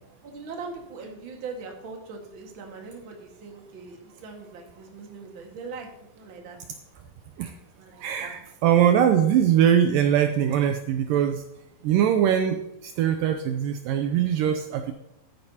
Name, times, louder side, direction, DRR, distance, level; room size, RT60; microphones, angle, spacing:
voice 1, 0.2-5.9 6.1-6.6 6.9-7.0 7.7-8.3, right 4 dB, 45° right, 1 dB, 2.0 m, -41 dB
voice 2, 8.0-11.4 11.8-14.9, right 9 dB, 80° right, 6 dB, 2.1 m, -22 dB
13.0 x 10.5 x 2.9 m, 0.88 s
omnidirectional pair, 4.2 m